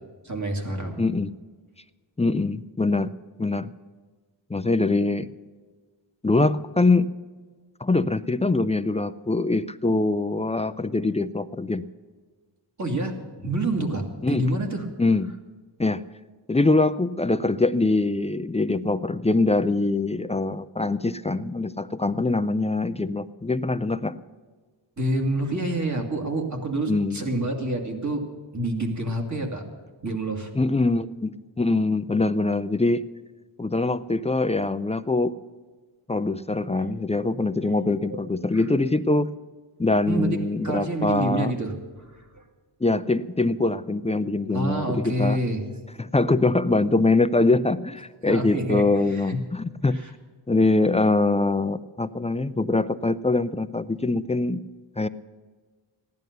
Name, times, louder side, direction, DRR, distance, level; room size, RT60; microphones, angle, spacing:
voice 1, 0.2-1.0 12.8-14.9 25.0-28.3 28.5-29.6 30.0-30.5 36.7-36.9 37.2-37.3 37.6-37.7 38.1-38.2 38.5-38.6 40.1-40.4 40.6-42.4 44.5-45.6 48.3-49.4 49.9-50.1, right 1 dB, 35° right, 3 dB, 2.3 m, -28 dB
voice 2, 1.0-1.3 2.2-3.1 3.4-3.7 4.5-5.3 6.2-7.1 7.8-11.8 14.2-14.5 15.0-15.3 15.8-16.0 16.5-24.2 26.9-27.2 30.6-33.0 33.6-35.3 36.1-39.3 39.8-41.5 42.8-45.4 46.0-50.0 50.5-54.6 55.0-55.1, left 2 dB, 15° left, 12 dB, 0.3 m, -23 dB
16.0 x 11.0 x 6.6 m, 1.4 s
wide cardioid pair, 145°, 48 cm